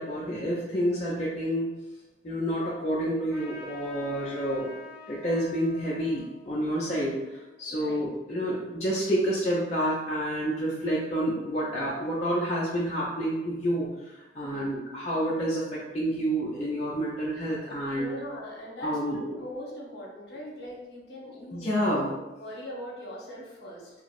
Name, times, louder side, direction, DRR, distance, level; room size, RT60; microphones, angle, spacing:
voice 1, 0.0-1.7 2.2-4.7 5.1-18.1 18.8-19.2 21.5-22.1, equal, 40° left, -7 dB, 0.5 m, -29 dB
Trumpet, 3.3-8.3, left 2 dB, 10° right, 0.8 m, -47 dB
voice 2, 7.7-8.1 14.4-14.8 17.9-22.1 22.4-23.9, equal, 60° left, -4 dB, 1.0 m, -41 dB
4.3 x 2.0 x 2.4 m, 1.0 s
head